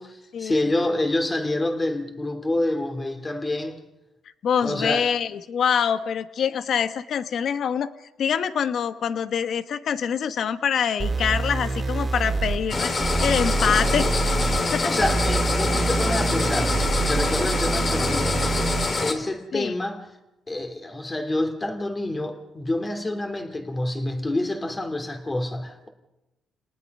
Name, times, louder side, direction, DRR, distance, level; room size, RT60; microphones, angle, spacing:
voice 1, 0.0-3.8 4.6-5.0 14.8-16.8 17.1-18.5 19.0-20.0 20.5-25.9, left 1 dB, 20° left, 2.9 m, -27 dB
voice 2, 4.4-7.9 8.2-14.1 14.7-14.9 19.5-19.7, left 7 dB, 60° left, 1.1 m, -25 dB
sound 1, 11.0-19.0, right 3 dB, 30° right, 2.8 m, -26 dB
sound 2, 12.7-19.1, left 3 dB, 40° left, 3.0 m, -25 dB
28.5 x 19.0 x 5.5 m
cardioid pair, 90°, 0 cm